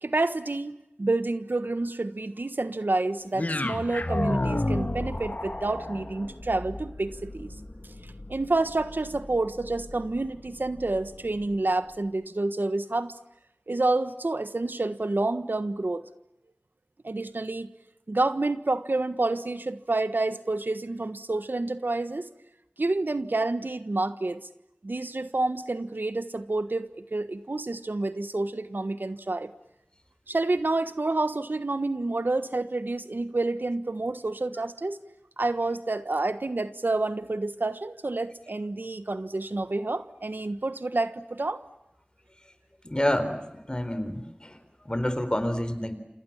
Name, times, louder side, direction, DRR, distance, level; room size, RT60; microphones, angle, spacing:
voice 1, 0.0-7.5 8.3-13.1 13.7-16.0 17.0-17.7 18.1-22.3 22.8-24.4 24.8-29.5 30.3-35.0 35.4-41.6, right 2 dB, 80° right, 11 dB, 1.4 m, -28 dB
sound 1, 3.3-11.5, left 1 dB, 55° left, 2.4 m, -33 dB
voice 2, 42.9-43.4 43.7-44.2 44.9-45.9, left 1 dB, 25° left, 11 dB, 4.0 m, -27 dB
29.0 x 27.5 x 7.3 m, 0.91 s
wide cardioid pair, 45°, 3 cm